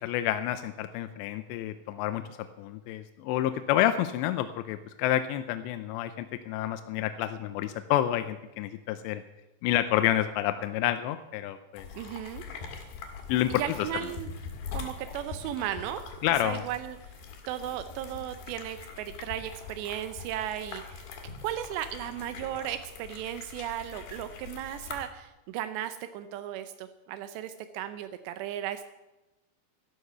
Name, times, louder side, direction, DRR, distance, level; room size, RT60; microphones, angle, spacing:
voice 1, 0.0-2.2 2.6-9.2 9.6-11.9 13.3-13.5 16.2-16.6, left 12 dB, 85° left, 10 dB, 2.8 m, -29 dB
sound 1, 11.8-25.0, left 5 dB, 65° left, 3.7 m, -43 dB
voice 2, 11.9-12.4 13.5-14.3 14.7-16.0 16.4-17.0 17.5-21.1 21.4-28.9, right 11 dB, 85° right, 10 dB, 2.8 m, -36 dB
13.5 x 11.0 x 6.8 m, 1.0 s
omnidirectional pair, 5.0 m